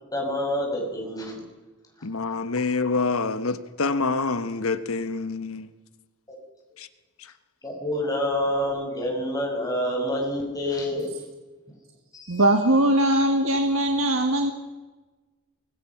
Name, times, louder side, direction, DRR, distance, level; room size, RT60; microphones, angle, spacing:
voice 1, 0.1-1.4 7.6-11.1 12.1-12.4, left 1 dB, 15° left, 0 dB, 5.7 m, -27 dB
voice 2, 2.0-5.7 6.8-6.9, left 3 dB, 80° left, 11 dB, 1.2 m, -26 dB
voice 3, 12.3-14.5, right 1 dB, 75° right, 4 dB, 1.7 m, -21 dB
25.0 x 21.5 x 5.9 m, 1.2 s
head